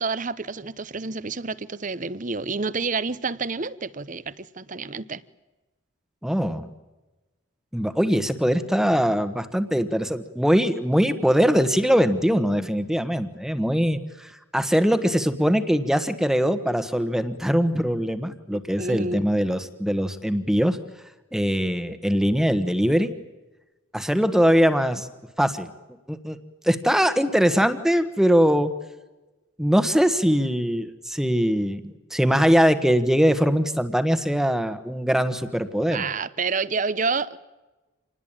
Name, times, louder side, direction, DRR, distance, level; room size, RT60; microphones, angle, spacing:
voice 1, 0.0-5.2 18.5-19.2 35.9-37.4, right 4 dB, 40° right, 0.9 m, -29 dB
voice 2, 6.2-6.7 7.7-20.8 21.3-23.1 23.9-25.1 25.4-25.7 26.1-26.4 26.6-28.7 29.6-36.0, equal, ahead, 1.3 m, -22 dB
27.5 x 20.0 x 8.9 m
head